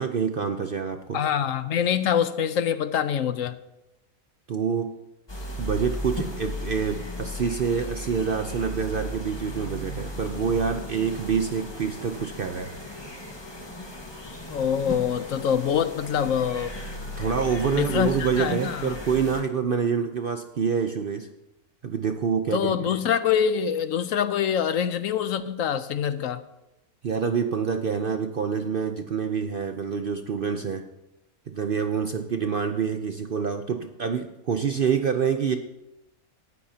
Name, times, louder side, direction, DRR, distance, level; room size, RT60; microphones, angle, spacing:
voice 1, 0.0-1.2 4.5-4.9 5.6-12.7 17.2-21.3 21.8-22.7 27.0-30.9 31.5-35.6, right 6 dB, 55° right, 7 dB, 0.6 m, -26 dB
voice 2, 1.1-3.6 14.5-16.7 17.7-19.0 22.5-26.4, left 8 dB, 65° left, 12 dB, 1.0 m, -25 dB
sound 1, 5.3-19.4, left 1 dB, 20° left, 1.5 m, -36 dB
18.0 x 13.5 x 2.8 m, 0.92 s
omnidirectional pair, 1.6 m